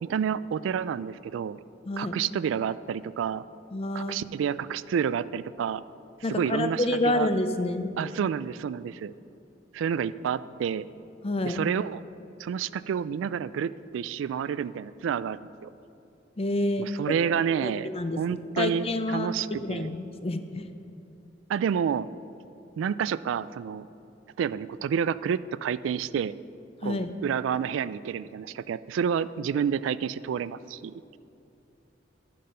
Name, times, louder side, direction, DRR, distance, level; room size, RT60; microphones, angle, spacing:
voice 1, 0.0-1.6 2.0-3.4 3.9-5.8 6.3-7.3 8.0-9.1 9.7-10.9 11.4-12.0 12.4-15.7 16.8-17.9 18.2-19.9 21.5-22.1 22.8-23.9 24.4-26.3 26.8-30.9, right 7 dB, 90° right, 17 dB, 0.3 m, -29 dB
voice 2, 1.8-2.2 3.7-4.2 6.2-7.9 11.2-11.6 16.4-16.9 17.6-19.3 19.6-20.7 26.8-27.1, left 1 dB, 30° left, 9 dB, 0.6 m, -28 dB
11.0 x 7.6 x 5.5 m, 2.8 s
head